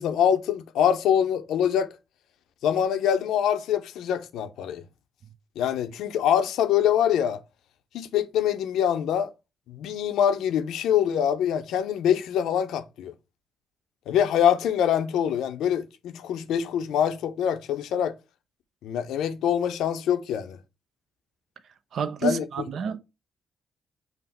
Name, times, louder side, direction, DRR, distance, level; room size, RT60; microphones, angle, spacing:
voice 1, 0.0-1.9 2.6-4.8 5.6-7.4 7.9-9.3 9.7-13.1 14.1-18.1 18.8-20.6 22.2-22.5, left 9 dB, 75° left, 0.5 m, -24 dB
voice 2, 21.9-23.0, right 6 dB, 65° right, 0.5 m, -29 dB
5.6 x 2.0 x 4.2 m
hypercardioid pair, 45°, 0 cm